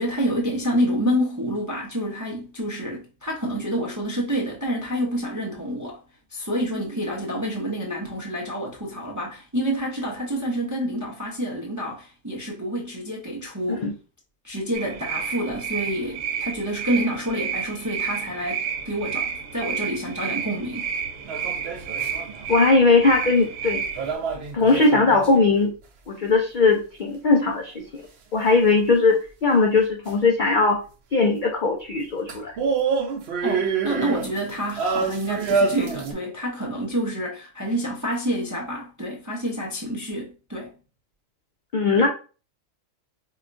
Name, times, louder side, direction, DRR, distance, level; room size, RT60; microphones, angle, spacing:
voice 1, 0.0-6.0 6.3-13.9 14.4-20.9 33.4-40.7, equal, 25° right, 0.4 m, -28 dB
sound 1, 14.7-24.1, right 7 dB, 90° right, 1.1 m, -31 dB
sound 2, 21.2-22.5 24.0-25.6 30.1-30.2 32.3-36.1, right 5 dB, 60° right, 0.8 m, -27 dB
voice 2, 22.5-23.8 24.5-25.7 26.1-28.0 28.3-30.8 31.1-32.5 41.7-42.1, left 3 dB, 60° left, 0.5 m, -19 dB
4.8 x 2.3 x 2.5 m
omnidirectional pair, 1.4 m